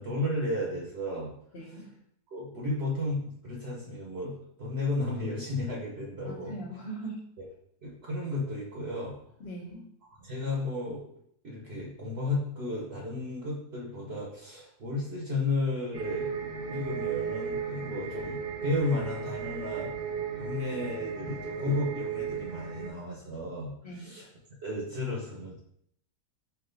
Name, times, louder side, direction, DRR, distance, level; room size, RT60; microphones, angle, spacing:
voice 1, 0.0-1.3 1.7-1.8 2.3-6.5 7.8-9.1 10.2-11.0 11.4-16.3 16.7-19.9 20.3-24.3 24.6-25.6, left 2 dB, 45° right, -4 dB, 1.1 m, -33 dB
voice 2, 1.5-1.9 6.2-7.2 9.4-9.8 23.8-24.1, right 2 dB, 50° left, -1 dB, 1.0 m, -40 dB
sound 1, 15.9-22.9, right 6 dB, 65° right, 0.5 m, -35 dB
4.6 x 2.9 x 3.9 m, 0.69 s
omnidirectional pair, 1.6 m